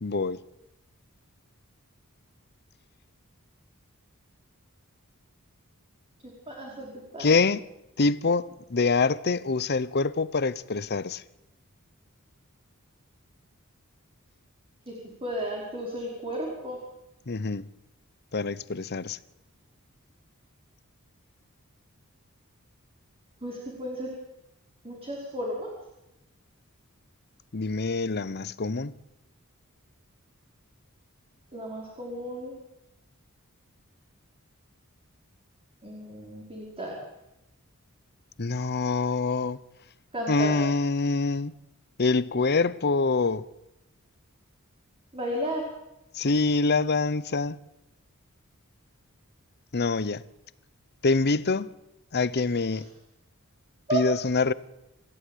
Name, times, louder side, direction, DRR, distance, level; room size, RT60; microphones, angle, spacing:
voice 1, 0.0-0.4 7.2-7.6 8.0-11.2 17.3-17.6 18.3-19.2 27.5-28.9 38.4-39.6 40.3-41.5 42.0-43.5 46.1-47.6 49.7-50.2 51.0-51.7 52.1-52.9 53.9-54.5, left 3 dB, 50° left, 0.9 m, -25 dB
voice 2, 6.2-7.3 14.8-14.9 15.2-16.8 23.4-24.2 24.8-25.7 31.5-32.5 35.8-37.0 40.1-40.6 45.1-45.6 52.7-52.8 53.9-54.1, right 1 dB, 25° right, 5.2 m, -33 dB
29.0 x 15.0 x 9.3 m
head